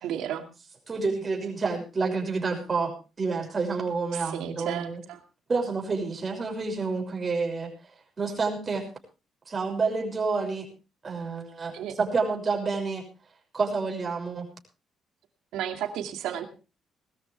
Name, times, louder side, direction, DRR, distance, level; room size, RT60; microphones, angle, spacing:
voice 1, 0.0-0.4 4.1-5.2 11.7-12.0 15.5-16.4, right 10 dB, 90° right, 6 dB, 2.4 m, -33 dB
voice 2, 0.9-5.0 5.5-7.7 8.2-8.8 9.5-10.7 11.0-13.0 13.5-14.5, right 4 dB, 35° right, 2 dB, 6.4 m, -29 dB
20.0 x 13.5 x 3.5 m, 0.32 s
cardioid pair, 90°, 0 cm